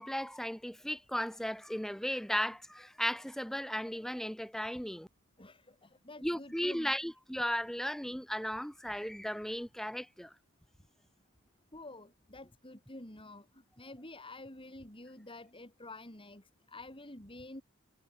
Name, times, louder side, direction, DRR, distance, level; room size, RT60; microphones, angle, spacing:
voice 1, 0.0-5.1 6.2-10.3, equal, ahead, 1.1 m, -36 dB
voice 2, 5.4-7.0 11.7-17.6, left 2 dB, 25° left, 4.2 m, -49 dB
head